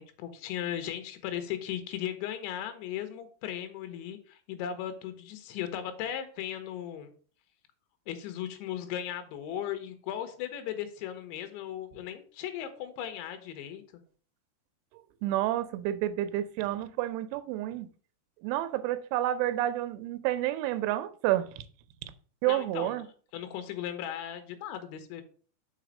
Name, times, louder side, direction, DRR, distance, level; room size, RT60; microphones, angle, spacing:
voice 1, 0.0-7.1 8.1-13.8 22.4-23.0 23.3-25.2, left 10 dB, 75° left, 3.4 m, -37 dB
voice 2, 15.2-17.9 18.4-21.6 22.4-23.1, right 14 dB, 85° right, 3.1 m, -29 dB
6.5 x 5.1 x 6.3 m
omnidirectional pair, 5.5 m